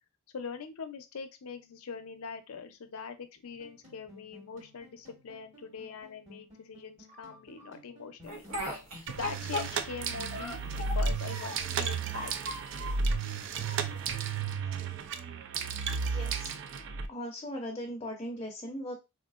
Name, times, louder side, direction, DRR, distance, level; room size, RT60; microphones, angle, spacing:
voice 1, 0.3-8.5 9.1-12.5, left 6 dB, 90° left, 9 dB, 0.5 m, -42 dB
sound 1, 3.4-12.4, left 1 dB, 30° right, 1.4 m, -56 dB
Speech, 8.3-10.0 10.3-11.7 12.1-13.1 13.6-14.4, equal, 75° right, 0.9 m, -38 dB
sound 2, 9.1-17.1, right 5 dB, 60° right, 0.3 m, -33 dB
voice 2, 16.0-16.5 17.1-19.0, equal, 20° left, 0 dB, 0.6 m, -38 dB
3.6 x 2.4 x 2.4 m, 0.25 s
head